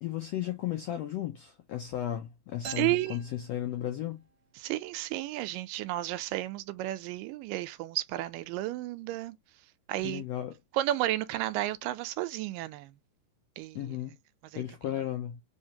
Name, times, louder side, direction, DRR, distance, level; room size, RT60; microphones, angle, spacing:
voice 1, 0.0-4.2 10.0-10.5 13.7-14.2 14.5-15.4, left 11 dB, 85° left, 1.4 m, -34 dB
sound 1, 2.6-4.3, right 5 dB, 55° right, 1.3 m, -46 dB
voice 2, 2.7-3.2 4.6-9.4 9.9-10.2 10.7-12.9 13.6-14.0 14.5-14.6 14.9-15.0, right 15 dB, 85° right, 2.2 m, -32 dB
4.9 x 3.2 x 2.7 m
omnidirectional pair, 3.9 m